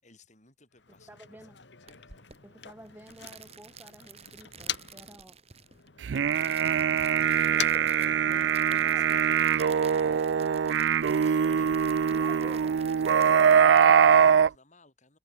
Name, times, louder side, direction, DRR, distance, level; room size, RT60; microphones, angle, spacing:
voice 1, 0.0-2.3 8.9-10.3 10.6-12.2 13.0-15.2, left 3 dB, 40° left, 6.7 m, -60 dB
Motor vehicle (road), 0.7-5.2 5.5-8.8, left 10 dB, 80° left, 2.3 m, -42 dB
voice 2, 1.1-1.6 2.4-5.4 12.0-12.8, right 1 dB, 10° right, 1.2 m, -51 dB
sound 1, 1.9-14.5, right 7 dB, 35° right, 2.5 m, -51 dB
sound 2, 6.0-14.5, right 7 dB, 80° right, 0.4 m, -22 dB
head